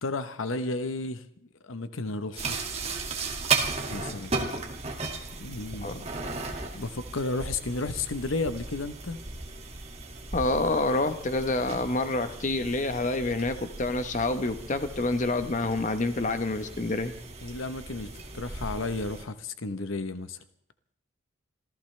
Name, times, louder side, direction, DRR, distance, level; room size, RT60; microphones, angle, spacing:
voice 1, 0.0-1.2 1.6-2.6 3.9-4.3 5.4-6.1 6.7-9.2 17.4-20.4, left 3 dB, 70° left, 11 dB, 0.9 m, -33 dB
sound 1, 2.4-19.2, right 4 dB, 30° right, 2.0 m, -36 dB
voice 2, 10.3-17.1, left 2 dB, 35° left, 9 dB, 1.0 m, -27 dB
27.5 x 15.0 x 3.3 m, 0.66 s
head